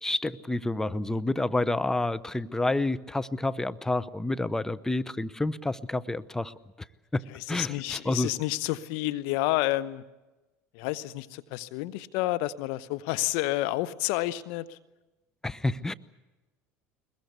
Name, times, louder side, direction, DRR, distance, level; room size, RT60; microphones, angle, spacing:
voice 1, 0.0-6.5 7.1-7.2 7.5-8.3 15.4-15.9, left 2 dB, 5° left, 14 dB, 0.8 m, -29 dB
voice 2, 7.3-10.0 10.7-14.8, left 17 dB, 70° left, 15 dB, 1.0 m, -30 dB
22.5 x 21.0 x 8.2 m, 1.1 s
hypercardioid pair, 80°, 7 cm